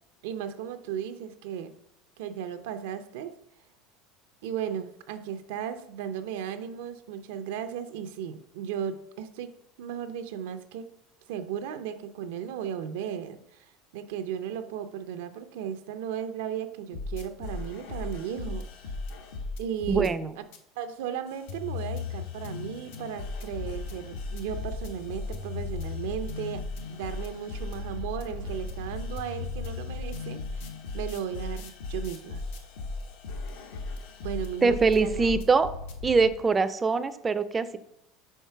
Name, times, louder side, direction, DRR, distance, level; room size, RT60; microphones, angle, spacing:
voice 1, 0.2-1.7 2.2-3.3 4.4-10.9 11.3-18.7 19.6-20.1 20.8-30.7 30.9-32.4 34.2-35.3, right 8 dB, 80° right, 9 dB, 0.5 m, -35 dB
sound 1, 16.9-20.1 20.5-20.6 21.3-36.3, left 3 dB, 80° left, 1.0 m, -36 dB
voice 2, 19.9-20.3 34.6-35.7 36.0-37.8, right 4 dB, 20° right, 13 dB, 0.4 m, -23 dB
4.5 x 4.3 x 5.6 m, 0.75 s
supercardioid pair, 130°, 0 cm